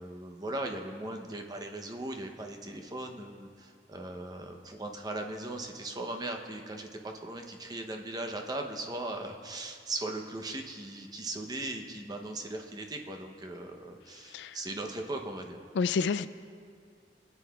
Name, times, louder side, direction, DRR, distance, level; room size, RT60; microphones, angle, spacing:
voice 1, 0.0-15.7, right 2 dB, 20° right, 4 dB, 0.7 m, -38 dB
voice 2, 14.2-14.6 15.7-16.3, left 5 dB, 75° left, 13 dB, 0.3 m, -29 dB
20.0 x 9.2 x 2.3 m, 2.2 s
head